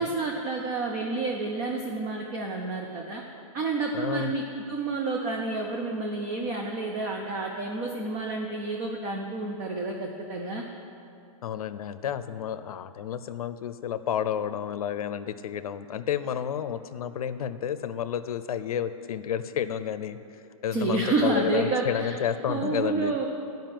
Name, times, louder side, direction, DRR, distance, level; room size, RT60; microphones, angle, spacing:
voice 1, 0.0-3.2 3.5-4.4 4.7-10.6 20.7-22.2 22.5-23.3, right 3 dB, 20° right, 1 dB, 0.4 m, -29 dB
voice 2, 3.9-4.3 11.4-20.2 20.6-23.2, left 9 dB, 80° left, 13 dB, 0.6 m, -31 dB
10.5 x 5.4 x 7.5 m, 2.7 s
hypercardioid pair, 165°, 19 cm